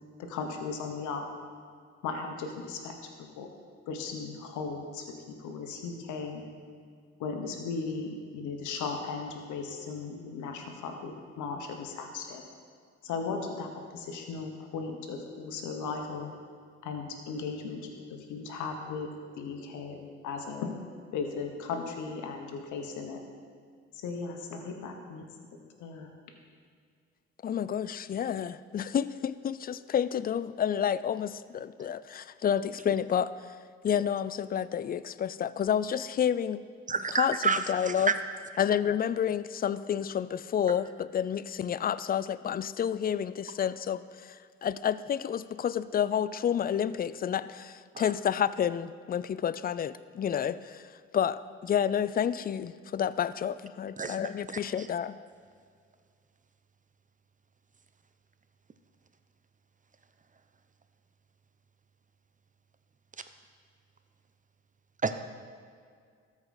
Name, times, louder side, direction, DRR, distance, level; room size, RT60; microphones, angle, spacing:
voice 1, 0.2-1.2 2.0-2.9 3.4-3.5 3.9-5.1 5.4-6.4 7.2-12.4 13.0-16.3 16.8-20.7 21.1-23.2 24.0-25.2 25.8-26.1, left 4 dB, 75° left, 4 dB, 1.1 m, -37 dB
voice 2, 27.4-33.3 33.8-36.6 37.1-38.1 38.6-50.9 51.1-55.2, left 9 dB, 30° left, 16 dB, 0.4 m, -30 dB
voice 3, 36.9-37.6 37.8-37.9 48.0-48.1 54.0-54.1 65.0-65.1, right 5 dB, 25° right, 10 dB, 0.7 m, -28 dB
13.5 x 4.9 x 4.2 m, 2.1 s
hypercardioid pair, 50°, 30 cm